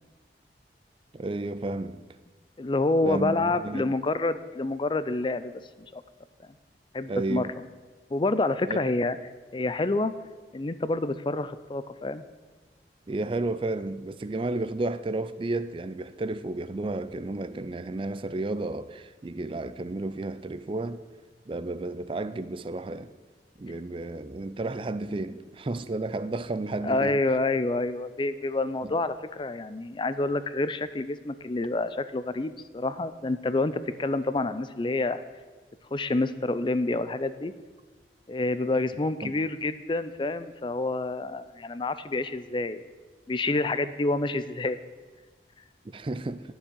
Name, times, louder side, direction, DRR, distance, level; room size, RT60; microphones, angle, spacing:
voice 1, 1.1-2.0 3.0-3.8 7.1-7.5 8.7-8.8 13.1-21.0 21.5-23.1 23.6-27.2 28.8-28.9 39.2-39.3 45.8-46.4, right 2 dB, 30° right, 0.4 m, -32 dB
voice 2, 2.6-5.6 5.9-6.0 6.9-7.7 8.1-9.2 9.5-10.1 10.5-12.2 26.8-35.2 35.9-37.5 38.3-42.9 43.3-44.8, left 2 dB, 25° left, 0.4 m, -28 dB
9.8 x 7.1 x 9.0 m
head